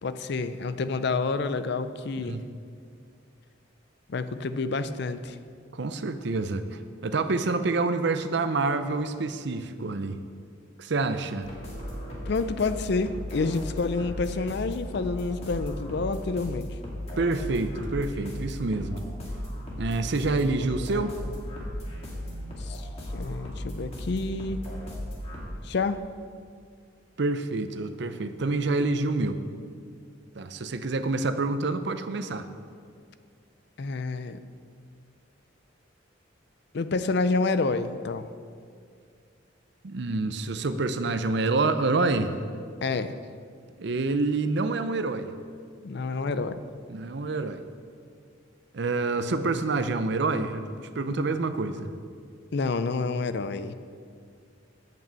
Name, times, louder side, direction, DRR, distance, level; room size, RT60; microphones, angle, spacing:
voice 1, 0.0-2.4 4.1-5.4 12.3-16.8 22.6-22.9 23.1-24.6 25.6-26.0 33.8-34.4 36.7-38.3 42.8-43.1 45.8-46.6 52.5-53.7, left 3 dB, 60° left, 12 dB, 0.5 m, -28 dB
voice 2, 5.7-10.2 10.8-11.5 17.2-19.0 19.8-21.2 27.2-29.4 30.4-32.5 39.8-42.3 43.8-45.3 46.9-47.6 48.7-51.9, right 3 dB, 60° right, 10 dB, 0.6 m, -27 dB
sound 1, 11.4-25.4, equal, 35° left, 2.1 m, -36 dB
8.9 x 6.0 x 7.5 m, 2.2 s
head